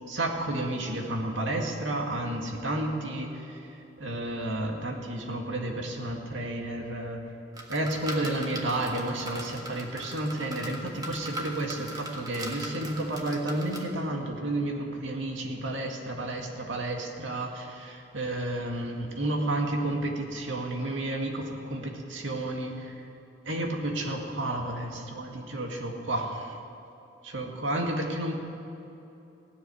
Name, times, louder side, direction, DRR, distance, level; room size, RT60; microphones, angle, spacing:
voice 1, 0.1-3.6 4.0-7.2 7.7-23.1 23.5-26.6 27.2-28.3, right 1 dB, 80° right, 1 dB, 2.1 m, -31 dB
sound 1, 7.5-13.9, right 1 dB, 20° right, 1.5 m, -40 dB
16.5 x 7.5 x 10.0 m, 2.9 s
head